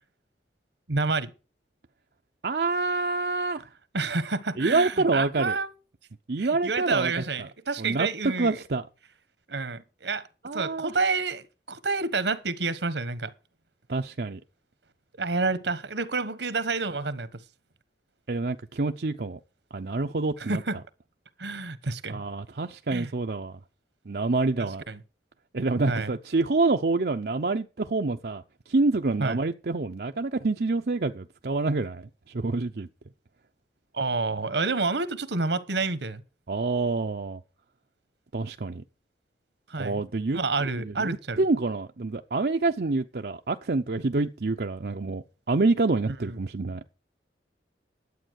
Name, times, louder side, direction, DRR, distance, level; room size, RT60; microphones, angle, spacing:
voice 1, 0.9-1.3 3.9-5.7 6.4-8.6 9.5-10.3 10.5-13.3 15.2-17.3 20.4-20.8 21.4-22.2 22.9-23.1 24.6-25.0 25.9-26.1 29.2-29.4 33.9-36.2 39.7-40.0 40.3-41.4 46.1-46.4, right 3 dB, 80° right, 1.2 m, -29 dB
voice 2, 2.4-3.6 4.6-5.6 6.3-7.1 7.8-8.9 10.4-11.0 13.9-14.4 18.3-19.4 19.7-20.6 22.1-23.5 24.1-24.8 25.5-32.9 36.5-37.4 38.3-38.8 39.8-46.8, right 3 dB, 60° right, 0.6 m, -27 dB
11.5 x 8.4 x 6.4 m
head